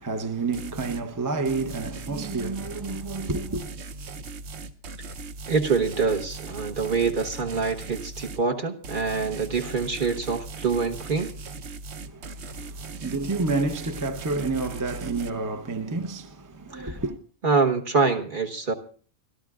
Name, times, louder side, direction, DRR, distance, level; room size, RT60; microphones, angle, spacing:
voice 1, 0.0-3.7 12.0-17.2, right 3 dB, 20° right, 0.5 m, -29 dB
sound 1, 0.5-1.1 1.5-8.5 8.8-15.3, right 3 dB, 60° right, 1.0 m, -39 dB
voice 2, 5.5-11.3 16.7-16.9 17.4-18.7, right 5 dB, 40° right, 1.3 m, -25 dB
29.0 x 13.0 x 2.4 m
omnidirectional pair, 1.4 m